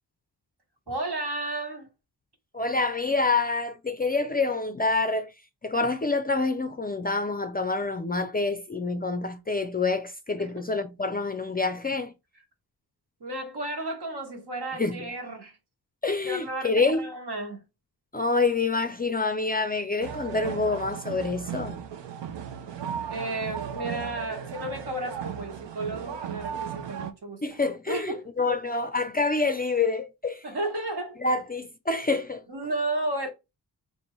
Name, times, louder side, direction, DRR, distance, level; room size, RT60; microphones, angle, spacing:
voice 1, 0.9-1.9 10.4-10.7 13.2-15.6 16.2-17.6 23.1-27.4 27.9-28.6 30.4-31.2 32.5-33.3, right 2 dB, 65° right, 1.3 m, -33 dB
voice 2, 2.5-5.3 5.6-12.1 14.8-15.0 16.0-17.1 18.1-21.8 27.4-30.4 31.2-32.5, left 3 dB, 25° left, 0.4 m, -27 dB
sound 1, 20.0-27.1, right 8 dB, 90° right, 0.6 m, -36 dB
3.8 x 2.6 x 3.0 m
wide cardioid pair, 75°, 42 cm